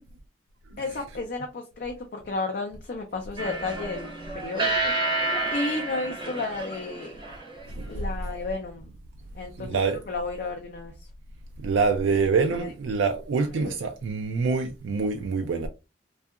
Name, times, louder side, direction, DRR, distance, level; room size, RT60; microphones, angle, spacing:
voice 1, 0.8-4.9 5.5-7.2 7.9-8.9 9.3-10.9 12.6-12.7 13.5-13.8, left 3 dB, 50° left, 0.4 m, -33 dB
sound 1, 3.4-7.6, right 2 dB, 25° right, 0.6 m, -29 dB
voice 2, 9.6-10.0 11.6-15.7, right 4 dB, 85° right, 0.4 m, -25 dB
2.7 x 2.3 x 2.3 m
head